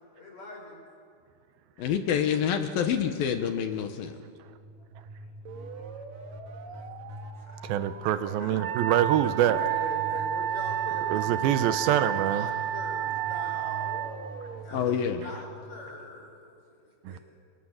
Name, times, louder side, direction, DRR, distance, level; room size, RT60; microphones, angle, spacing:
voice 1, 0.2-0.8 5.2-5.3 5.6-5.7 6.0-7.8 8.2-8.6 9.2-14.1 14.6-17.2, left 2 dB, 45° left, 6.7 m, -43 dB
voice 2, 1.8-4.1 14.7-15.2, left 8 dB, 75° left, 3.0 m, -27 dB
sound 1, 4.4-16.3, right 2 dB, 65° right, 3.5 m, -43 dB
voice 3, 7.6-9.6 11.1-12.5 17.1-17.2, right 11 dB, 80° right, 2.6 m, -25 dB
Wind instrument woodwind instrument, 8.6-14.1, right 12 dB, 40° right, 1.2 m, -30 dB
29.5 x 26.0 x 7.4 m
omnidirectional pair, 4.4 m